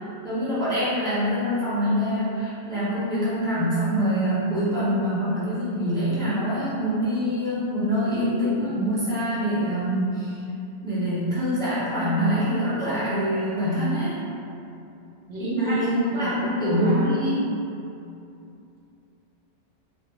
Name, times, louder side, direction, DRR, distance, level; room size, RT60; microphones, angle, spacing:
voice 1, 0.2-10.4 10.8-14.2 15.4-15.8 16.1-17.4, equal, 5° left, -11 dB, 0.7 m, -25 dB
voice 2, 15.3-17.1, right 1 dB, 85° right, -5 dB, 1.0 m, -27 dB
2.9 x 2.1 x 3.6 m, 2.7 s
omnidirectional pair, 1.2 m